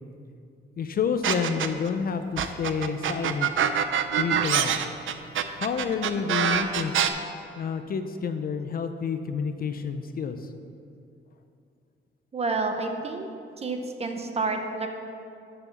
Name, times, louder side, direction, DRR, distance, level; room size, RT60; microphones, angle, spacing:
voice 1, 0.8-3.5 4.2-4.7 5.6-6.9 7.6-10.4, left 6 dB, 45° left, 8 dB, 0.5 m, -29 dB
sound 1, 1.2-1.9 2.4-7.1, right 9 dB, 75° right, 0.5 m, -24 dB
voice 2, 12.3-13.3 13.6-14.9, right 3 dB, 30° right, 5 dB, 0.7 m, -29 dB
7.0 x 6.8 x 7.0 m, 2.5 s
wide cardioid pair, 175°, 21 cm